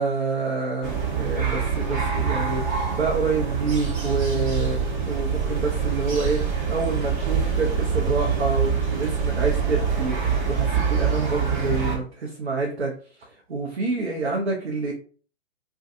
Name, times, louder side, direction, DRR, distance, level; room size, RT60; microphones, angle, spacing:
voice 1, 0.0-12.9 13.5-14.9, right 3 dB, 75° right, -2 dB, 0.7 m, -27 dB
sound 1, 0.8-12.0, right 6 dB, 45° right, 0.9 m, -25 dB
2.6 x 2.3 x 2.6 m, 0.41 s
figure-of-eight pair, 120°, 33 cm